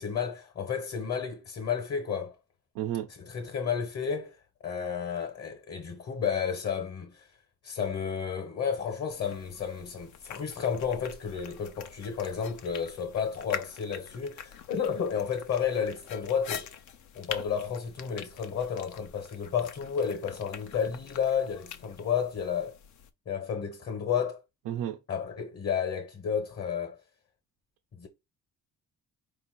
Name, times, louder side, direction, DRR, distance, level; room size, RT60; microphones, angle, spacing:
voice 1, 0.0-2.3 3.1-4.4 4.6-7.3 7.6-16.7 17.1-22.8 23.3-24.4 25.1-27.0 28.0-28.1, left 7 dB, 50° left, 1.2 m, -32 dB
voice 2, 2.8-3.1 24.7-25.0, right 11 dB, 90° right, 0.6 m, -31 dB
sound 1, 9.1-23.1, left 8 dB, 75° left, 0.7 m, -45 dB
4.5 x 2.8 x 4.1 m
cardioid pair, 90°, 30 cm